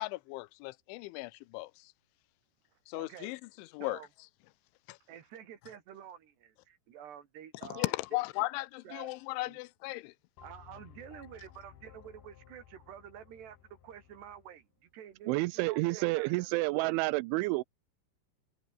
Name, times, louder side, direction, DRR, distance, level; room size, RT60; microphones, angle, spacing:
voice 1, 0.0-1.9 2.9-4.0 4.9-5.0 7.7-10.1, left 21 dB, 85° left, 3.0 m, -37 dB
voice 2, 2.9-3.3 3.8-4.1 5.1-8.2 8.8-9.1 9.4-9.6 10.4-16.5 16.8-16.9, right 9 dB, 65° right, 4.4 m, -49 dB
sound 1, 10.4-14.6, left 10 dB, 60° left, 3.6 m, -57 dB
voice 3, 15.3-17.6, right 22 dB, 85° right, 3.0 m, -29 dB
omnidirectional pair, 5.4 m